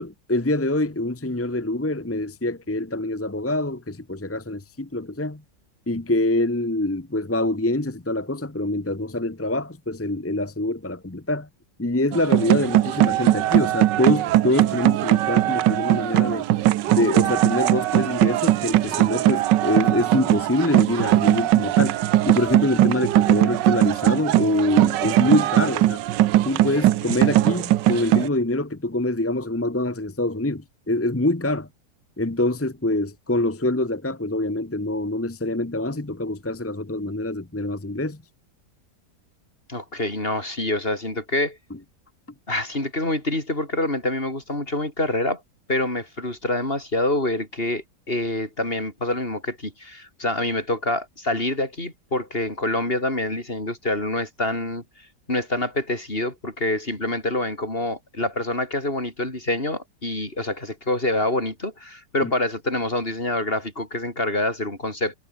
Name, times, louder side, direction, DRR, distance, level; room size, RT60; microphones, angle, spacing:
voice 1, 0.0-5.4 5.9-11.5 11.8-16.4 16.9-22.0 22.2-26.0 26.4-31.7 32.2-38.2 62.2-62.3, left 1 dB, 10° left, 0.6 m, -25 dB
sound 1, 12.1-28.3, right 14 dB, 85° right, 1.4 m, -20 dB
voice 2, 39.7-41.6 42.5-45.4 45.7-54.8 55.3-65.1, left 1 dB, 30° left, 5.7 m, -26 dB
omnidirectional pair, 1.9 m